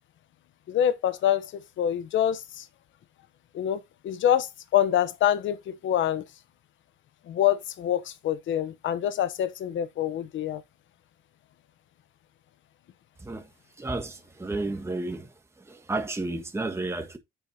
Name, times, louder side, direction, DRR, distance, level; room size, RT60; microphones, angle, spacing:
voice 1, 0.7-2.7 3.5-6.2 7.3-10.6, left 10 dB, 70° left, 1.0 m, -26 dB
voice 2, 13.8-15.3 15.7-17.2, right 2 dB, 15° right, 1.4 m, -32 dB
9.1 x 7.3 x 2.8 m
cardioid pair, 90°, 20 cm